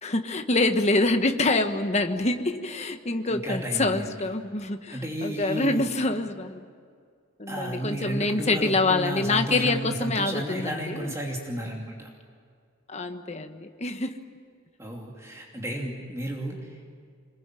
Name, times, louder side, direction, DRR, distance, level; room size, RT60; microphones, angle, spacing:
voice 1, 0.0-6.6 7.4-11.1 12.9-14.2, left 2 dB, 30° left, 6 dB, 1.3 m, -26 dB
voice 2, 3.3-4.1 4.9-5.8 7.5-12.1 14.8-16.9, right 1 dB, 15° right, -1 dB, 2.8 m, -33 dB
26.0 x 22.0 x 9.1 m, 2.2 s
head